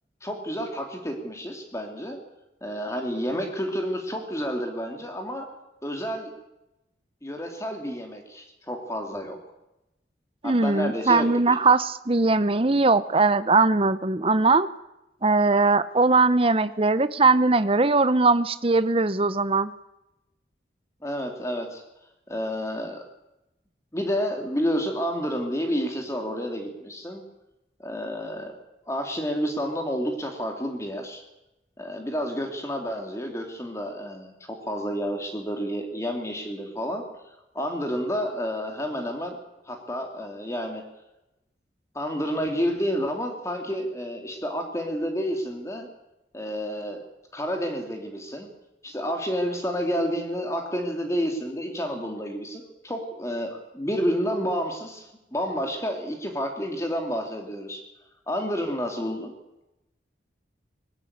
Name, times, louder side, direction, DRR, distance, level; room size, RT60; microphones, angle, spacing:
voice 1, 0.2-2.2 2.6-5.5 5.8-6.3 7.2-9.4 10.4-11.5 21.0-21.8 22.3-23.0 23.9-27.2 27.8-28.6 28.9-31.2 31.8-37.0 37.5-39.4 39.7-40.8 41.9-45.9 46.3-47.0 47.3-48.5 48.8-57.8 58.3-59.3, equal, 15° left, 3 dB, 2.7 m, -30 dB
voice 2, 10.4-14.7 15.2-19.7, right 3 dB, 30° right, 13 dB, 0.8 m, -20 dB
20.0 x 16.5 x 8.7 m, 0.92 s
head